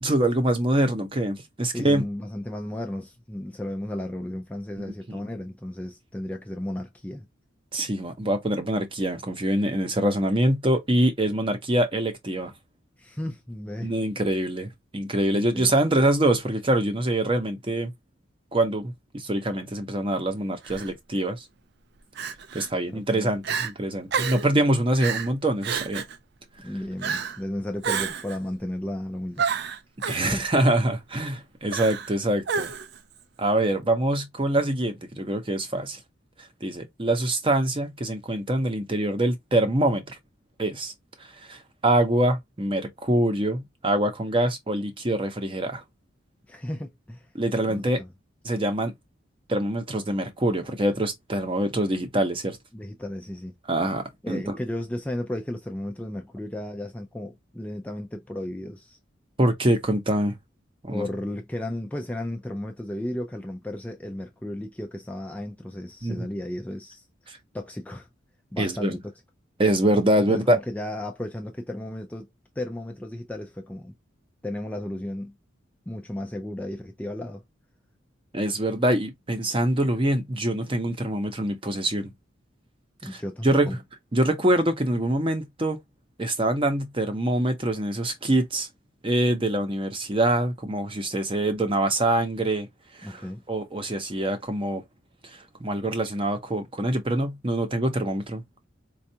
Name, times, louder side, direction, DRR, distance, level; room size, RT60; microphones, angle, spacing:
voice 1, 0.0-2.0 5.1-5.2 7.7-12.5 13.8-17.9 18.5-21.4 22.5-26.0 30.1-32.7 33.4-36.0 36.6-40.2 40.6-40.9 41.3-45.8 47.3-48.0 48.4-48.9 49.5-52.6 53.7-54.6 59.4-60.4 60.8-61.0 66.0-66.3 67.3-67.4 68.6-69.0 69.6-70.6 78.3-82.1 83.0-83.7 84.1-85.8 86.2-88.7 89.0-92.7 92.9-93.2 93.5-94.8 95.2-98.6, right 1 dB, 25° right, 0.7 m, -25 dB
voice 2, 1.7-7.3 13.0-13.9 15.3-15.7 22.9-23.3 26.6-29.5 30.2-30.5 46.5-47.3 47.7-48.1 52.7-53.5 54.2-59.0 60.9-68.1 68.5-69.1 70.2-72.3 72.6-73.9 74.4-75.3 75.9-77.4 83.0-83.8 93.0-93.4, left 1 dB, 5° left, 0.3 m, -34 dB
Crying sobbing, 20.6-20.9 22.2-22.7 23.1-23.2 23.4-23.7 24.1-24.5 25.0-25.3 25.6-26.2 27.0-27.4 27.8-28.4 29.4-30.3 31.7-32.1 32.5-33.0, right 6 dB, 55° right, 0.4 m, -29 dB
4.4 x 2.3 x 2.7 m
head